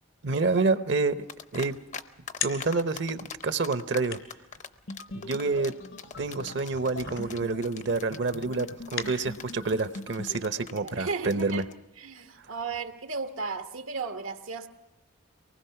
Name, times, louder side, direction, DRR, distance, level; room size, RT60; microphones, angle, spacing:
voice 1, 0.2-1.2 1.5-1.8 2.4-4.2 5.1-5.7 6.2-11.6, right 3 dB, 55° right, 0.8 m, -28 dB
sound 1, 1.3-2.0 2.3-11.7, left 6 dB, 35° left, 0.7 m, -42 dB
sound 2, 1.4-9.7, left 7 dB, 80° left, 2.5 m, -42 dB
sound 3, 4.9-10.4, left 1 dB, 60° left, 0.9 m, -43 dB
voice 2, 10.8-11.6 12.0-14.7, right 4 dB, 85° right, 1.2 m, -35 dB
24.5 x 19.5 x 5.9 m
head